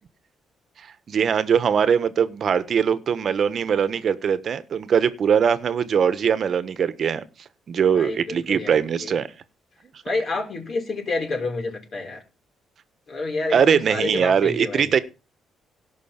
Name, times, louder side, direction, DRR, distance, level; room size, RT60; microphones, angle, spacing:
voice 1, 1.1-7.2 7.7-9.3 13.5-15.0, right 7 dB, 55° right, 1.3 m, -21 dB
voice 2, 7.9-9.1 10.0-12.2 13.1-15.0, left 3 dB, 50° left, 5.9 m, -29 dB
17.0 x 6.1 x 6.0 m
cardioid pair, 90°, 0 cm